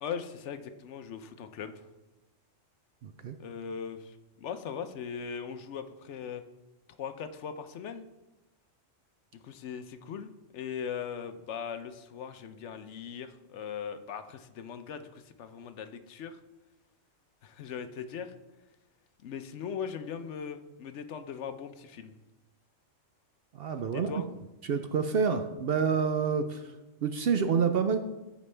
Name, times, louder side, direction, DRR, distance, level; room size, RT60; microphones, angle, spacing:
voice 1, 0.0-1.9 3.4-6.4 7.0-8.0 9.4-16.4 17.4-18.3 19.2-22.1 23.9-24.3, left 7 dB, 70° left, 9 dB, 0.9 m, -39 dB
voice 2, 3.0-3.3 23.5-24.1 24.6-26.7 27.0-28.0, right 6 dB, 60° right, 8 dB, 0.7 m, -28 dB
14.0 x 5.1 x 3.3 m, 1.0 s
omnidirectional pair, 1.3 m